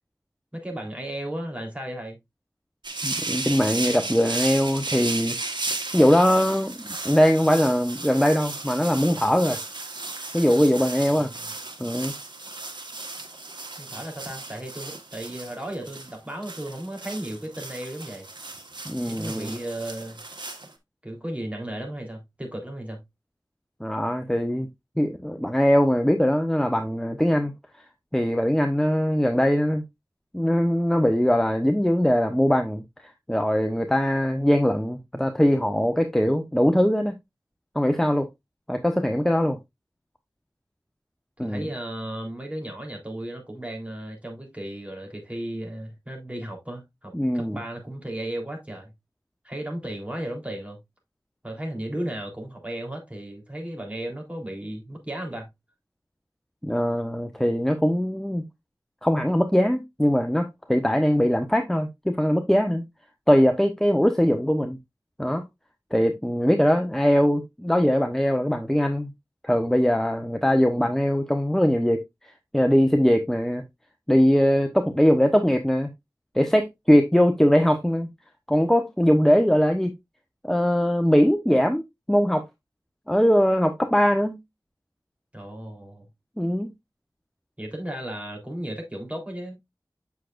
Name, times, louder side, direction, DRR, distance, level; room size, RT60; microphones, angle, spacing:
voice 1, 0.5-2.2 11.1-11.5 13.8-18.3 19.0-20.2 21.0-23.0 41.4-48.9 49.4-50.8 51.4-55.5 85.3-86.1 87.6-89.6, right 1 dB, 15° right, 3.5 m, -35 dB
sound 1, 2.8-20.7, right 3 dB, 90° right, 1.4 m, -35 dB
voice 2, 3.0-5.4 5.9-9.6 10.3-11.3 11.8-12.1 18.8-19.5 23.8-24.7 25.0-27.5 28.1-29.8 30.3-32.8 33.3-37.1 37.7-38.3 38.7-39.6 41.4-41.7 47.1-47.6 56.6-58.4 59.0-62.8 63.3-64.8 65.2-65.4 65.9-69.1 69.4-72.0 72.5-73.6 74.1-75.9 76.3-78.1 78.5-79.9 80.4-82.4 83.1-84.4 86.4-86.7, equal, 5° left, 0.9 m, -21 dB
8.3 x 6.6 x 2.5 m
wide cardioid pair, 60°, 8 cm